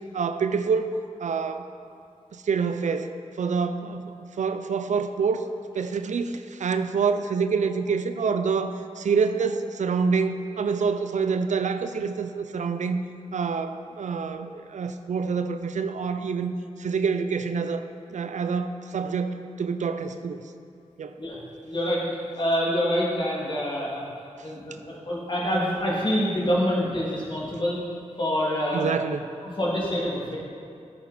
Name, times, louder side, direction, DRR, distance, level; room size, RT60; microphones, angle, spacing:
voice 1, 0.1-1.7 2.3-5.5 5.7-13.0 13.3-20.5 21.0-21.2 24.4-24.5 28.7-29.3, right 5 dB, 75° right, 9 dB, 0.5 m, -27 dB
voice 2, 21.6-22.0 22.4-24.0 24.4-27.8 28.2-28.9 29.4-30.4, equal, 40° left, -5 dB, 2.3 m, -26 dB
11.0 x 6.7 x 4.2 m, 2.4 s
wide cardioid pair, 80°, 13 cm